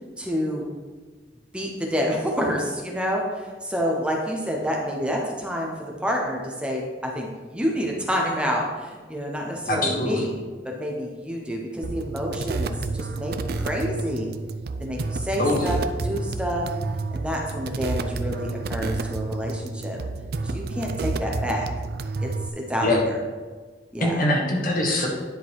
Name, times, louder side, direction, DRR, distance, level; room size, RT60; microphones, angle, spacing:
voice 1, 0.2-0.7 1.5-10.4 10.6-14.3 14.8-16.7 17.1-20.0 20.4-21.7 22.2-22.9 23.9-24.3, equal, 5° right, -1 dB, 0.8 m, -28 dB
voice 2, 9.7-10.2 15.4-15.7 22.8-23.0 24.0-25.1, left 1 dB, 50° left, 0 dB, 1.4 m, -23 dB
sound 1, 11.8-22.5, right 3 dB, 60° right, 0.4 m, -30 dB
10.0 x 3.8 x 4.7 m, 1.4 s
head